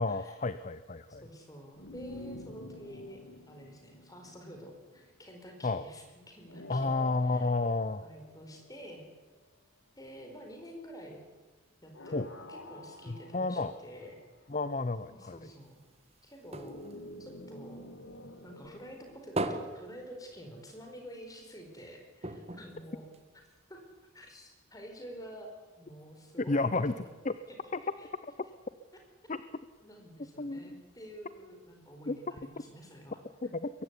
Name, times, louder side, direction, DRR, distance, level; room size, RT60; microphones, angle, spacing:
voice 1, 0.0-1.2 5.6-5.8 6.7-8.1 12.1-12.3 13.1-13.7 14.5-15.4 26.4-26.9 27.2-27.4 27.7-27.8 29.3-29.4 30.4-30.8 32.1-32.2 33.6-33.7, left 3 dB, 35° left, 13 dB, 0.6 m, -31 dB
voice 2, 1.1-3.2 3.5-7.5 8.0-9.0 10.0-11.2 11.8-14.2 15.1-15.8 16.2-16.8 17.2-17.8 18.4-23.1 23.7-23.8 24.1-27.1 27.5-27.6 28.0-28.1 29.8-33.5, equal, 15° left, 3 dB, 4.5 m, -49 dB
sound 1, 1.8-5.1 6.5-9.3 11.9-14.6 16.6-19.4, left 1 dB, 65° left, 1.9 m, -49 dB
sound 2, 15.6-18.3 18.6-20.9 21.2-21.3 21.6-21.7 22.2-23.7 24.3-24.4, right 1 dB, 30° right, 1.4 m, -40 dB
22.5 x 15.0 x 9.9 m, 1.3 s
head